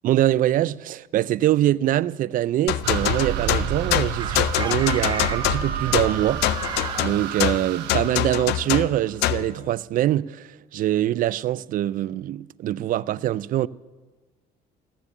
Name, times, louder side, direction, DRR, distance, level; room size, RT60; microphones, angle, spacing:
voice 1, 0.0-13.7, right 13 dB, 55° right, 0.4 m, -24 dB
sound 1, 2.7-9.5, left 15 dB, 85° left, 0.5 m, -25 dB
sound 2, 2.8-9.2, right 9 dB, 90° right, 1.1 m, -31 dB
Chicken rooster, 4.2-7.1, right 4 dB, 30° right, 1.2 m, -32 dB
15.0 x 7.3 x 9.8 m
cardioid pair, 110°, 17 cm